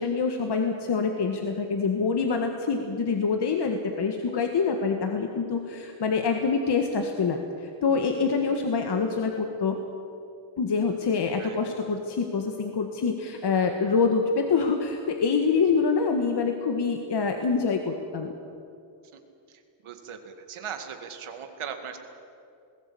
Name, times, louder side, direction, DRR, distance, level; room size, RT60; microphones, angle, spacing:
voice 1, 0.0-9.8 10.6-18.3, left 5 dB, 55° left, 4 dB, 1.7 m, -26 dB
voice 2, 19.8-22.0, right 7 dB, 80° right, 6 dB, 2.3 m, -38 dB
20.5 x 16.5 x 8.5 m, 2.6 s
cardioid pair, 95°, 49 cm